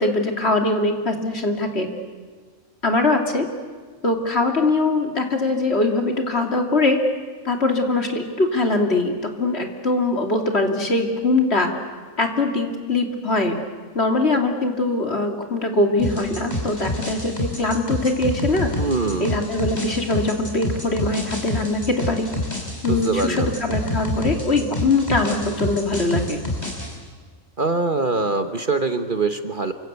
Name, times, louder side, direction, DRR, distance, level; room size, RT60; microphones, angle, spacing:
voice 1, 0.0-1.9 2.8-3.5 4.0-7.0 7.4-11.7 12.2-13.5 13.9-18.7 19.2-22.3 22.8-26.4, left 2 dB, 50° left, 3 dB, 3.0 m, -22 dB
sound 1, 16.0-27.0, left 1 dB, 30° left, 5.0 m, -28 dB
voice 2, 18.8-19.3 22.9-23.5 27.6-29.7, right 3 dB, 40° right, 7 dB, 1.3 m, -23 dB
28.0 x 25.0 x 8.2 m, 1.5 s
omnidirectional pair, 1.5 m